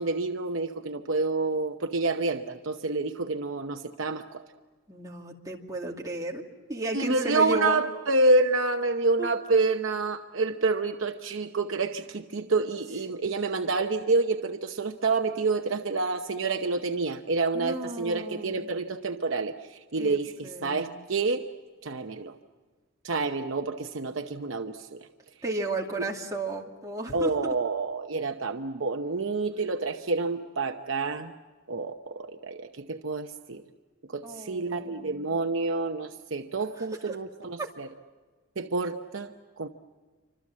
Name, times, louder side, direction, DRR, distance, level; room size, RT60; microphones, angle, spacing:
voice 1, 0.0-4.4 6.9-21.4 21.8-22.3 23.0-25.1 27.1-31.3 31.7-33.6 34.1-37.9 38.6-39.3 39.6-39.7, right 3 dB, 65° right, 6 dB, 0.9 m, -28 dB
voice 2, 4.9-7.8 9.2-9.3 17.5-18.7 20.0-21.0 25.4-27.5 34.2-35.4 36.8-37.2 37.6-37.7, right 2 dB, 15° right, -1 dB, 2.5 m, -34 dB
27.5 x 25.5 x 7.5 m, 1.4 s
head